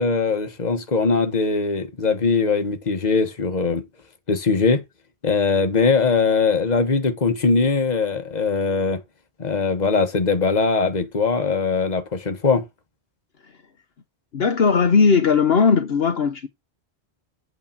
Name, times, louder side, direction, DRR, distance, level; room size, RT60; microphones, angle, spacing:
voice 1, 0.0-3.8 4.3-4.8 5.2-9.0 9.4-12.6, left 4 dB, 40° left, 1.5 m, -21 dB
voice 2, 14.3-16.5, left 5 dB, 65° left, 1.2 m, -18 dB
8.6 x 4.4 x 7.3 m
omnidirectional pair, 1.1 m